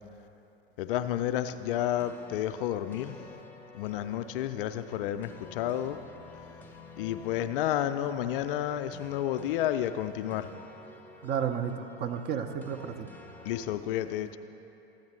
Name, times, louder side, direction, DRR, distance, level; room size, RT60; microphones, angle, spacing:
voice 1, 0.8-3.2 3.7-6.0 7.0-10.5 13.4-14.4, left 11 dB, 55° left, 10 dB, 0.4 m, -31 dB
sound 1, 1.7-13.8, left 3 dB, 5° left, 0.7 m, -51 dB
voice 2, 11.2-13.1, right 8 dB, 30° right, 7 dB, 0.5 m, -32 dB
13.0 x 8.5 x 3.2 m, 2.9 s
figure-of-eight pair, 80°, 32 cm